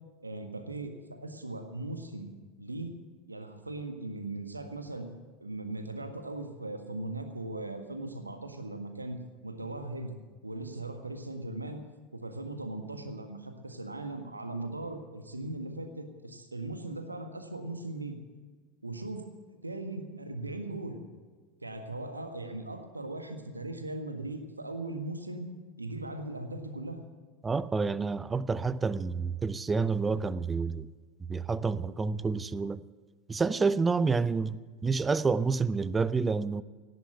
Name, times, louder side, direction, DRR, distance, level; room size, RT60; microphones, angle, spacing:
voice 1, 0.2-0.9 1.2-2.3 2.6-2.9 3.3-5.1 5.4-9.2 9.4-10.1 10.4-11.8 12.1-18.2 18.8-21.0 21.6-25.5 25.8-27.0, right 2 dB, 85° right, 1.6 m, -39 dB
voice 2, 27.4-30.9 31.3-32.8 33.3-36.6, right 4 dB, 15° right, 0.6 m, -29 dB
17.5 x 8.1 x 8.8 m
figure-of-eight pair, 80°, 0 cm